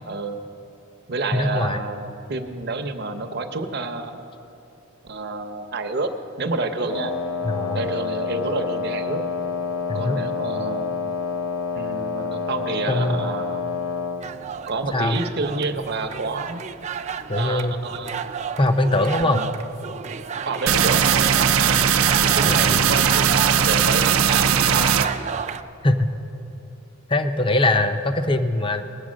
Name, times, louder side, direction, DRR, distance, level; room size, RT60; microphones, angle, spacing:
voice 1, 0.1-0.4 1.1-4.2 5.0-6.1 6.4-7.1 7.7-9.2 9.9-11.0 11.7-13.6 14.7-16.6 17.4-18.2 19.2-19.5 20.4-21.8 22.3-25.1, right 3 dB, 50° right, 5 dB, 0.7 m, -29 dB
voice 2, 1.3-1.8 7.4-7.9 9.9-10.2 12.9-13.2 14.9-15.2 17.3-17.8 18.6-19.4 22.4-22.8 25.8-26.1 27.1-28.8, left 2 dB, 25° left, 8 dB, 0.5 m, -22 dB
Wind instrument woodwind instrument, 6.9-14.3, left 5 dB, 75° left, 1.0 m, -28 dB
sound 1, 14.2-25.6, right 7 dB, 35° right, 0.3 m, -32 dB
sound 2, 20.7-25.1, right 8 dB, 85° right, 0.6 m, -19 dB
19.5 x 8.0 x 6.3 m, 3.0 s
head